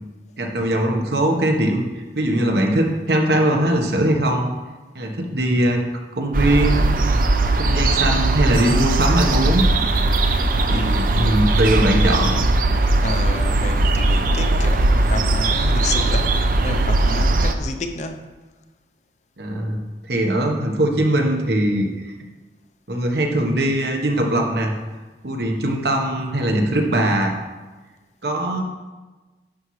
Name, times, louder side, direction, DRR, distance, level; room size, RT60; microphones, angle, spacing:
voice 1, 0.4-4.5 4.9-5.8 6.1-6.8 7.6-9.7 10.7-12.4 19.4-19.8 20.1-21.9 22.9-24.7 25.2-27.3 28.2-28.6, right 1 dB, 65° right, 2 dB, 1.2 m, -20 dB
sound 1, 6.3-17.5, right 2 dB, 50° right, 0.5 m, -19 dB
voice 2, 10.7-11.4 13.0-16.4 16.6-18.4, left 2 dB, 40° left, 6 dB, 0.6 m, -31 dB
10.0 x 7.0 x 3.2 m, 1.2 s
head